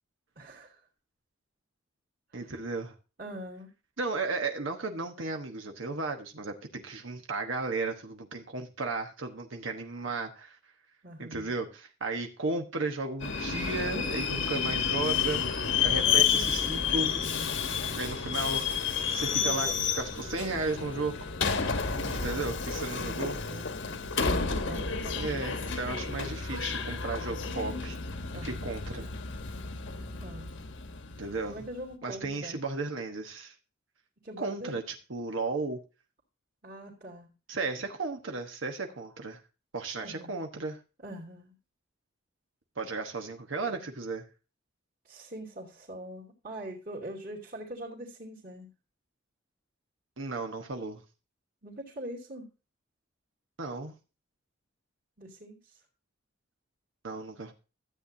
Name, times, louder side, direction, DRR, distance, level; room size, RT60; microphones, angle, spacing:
voice 1, 0.4-0.8 2.3-2.5 3.2-3.7 11.0-11.5 15.8-16.6 19.3-19.8 21.8-22.2 22.9-23.7 24.6-25.7 28.3-28.7 30.2-30.5 31.5-32.6 34.2-34.7 36.6-37.3 40.0-40.3 41.0-41.6 43.6-43.8 45.0-48.7 51.6-52.5 55.2-55.8, right 1 dB, 45° right, -6 dB, 2.7 m, -43 dB
voice 2, 2.3-2.9 4.0-10.6 11.2-15.4 15.8-17.2 17.9-18.9 19.1-19.7 19.9-21.3 22.1-23.4 25.2-28.0 28.3-29.1 31.2-31.6 32.0-33.5 34.4-35.8 37.5-39.4 39.7-40.8 42.8-44.3 50.2-51.0 53.6-53.9 57.0-57.5, right 3 dB, 75° right, 4 dB, 1.2 m, -34 dB
Subway metro underground, 13.2-31.6, left 6 dB, 70° left, 1.3 m, -31 dB
13.5 x 8.6 x 2.7 m, 0.31 s
head